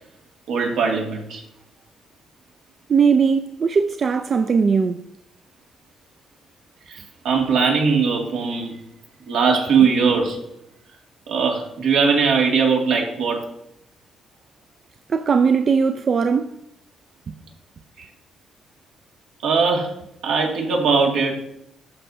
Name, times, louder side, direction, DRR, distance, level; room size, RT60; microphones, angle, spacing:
voice 1, 0.5-1.4 6.9-8.8 9.3-10.4 11.3-13.4 18.0-18.1 19.4-19.9 20.2-21.3, right 5 dB, 85° right, 2.0 m, -20 dB
voice 2, 2.9-5.0 15.1-16.6, right 5 dB, 45° right, 0.4 m, -19 dB
12.0 x 5.4 x 2.7 m
cardioid pair, 90°, 0 cm